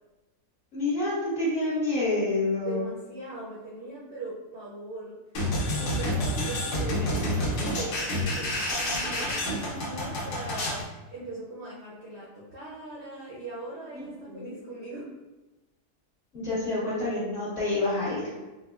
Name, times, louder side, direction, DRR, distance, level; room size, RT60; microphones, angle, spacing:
voice 1, 0.7-2.9 13.9-14.5 16.3-18.3, left 2 dB, 50° left, -12 dB, 1.5 m, -28 dB
voice 2, 2.7-5.2 5.6-10.8 11.1-15.1, right 2 dB, 60° right, -6 dB, 0.7 m, -40 dB
sound 1, 5.3-10.8, left 1 dB, 80° left, 1.4 m, -29 dB
4.5 x 2.1 x 2.3 m, 1.1 s
omnidirectional pair, 1.7 m